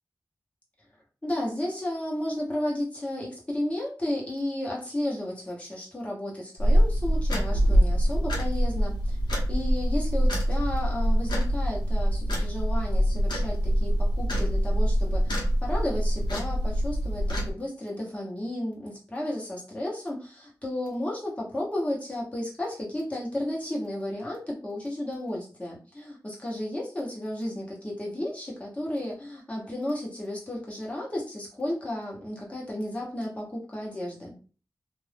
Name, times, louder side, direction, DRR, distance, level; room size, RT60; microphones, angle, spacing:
voice 1, 1.2-34.4, left 1 dB, 15° left, -4 dB, 1.2 m, -33 dB
sound 1, 6.6-17.5, equal, 80° left, 1.1 m, -24 dB
2.6 x 2.5 x 3.4 m, 0.37 s
wide cardioid pair, 100°, 8 cm